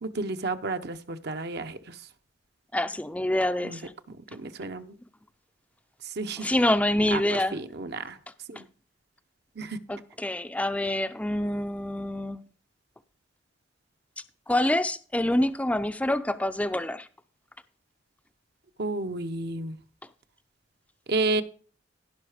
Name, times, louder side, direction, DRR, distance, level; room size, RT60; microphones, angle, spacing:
voice 1, 0.0-2.0 3.6-3.8 4.3-5.0 6.0-6.5 7.1-7.2 7.5-8.2 8.5-8.6 9.6-9.8 18.8-19.8 21.1-21.4, right 2 dB, 55° right, 0.9 m, -31 dB
voice 2, 2.7-3.9 6.4-7.6 9.9-12.4 14.5-17.1, left 1 dB, 5° left, 0.5 m, -26 dB
16.0 x 5.7 x 5.0 m
head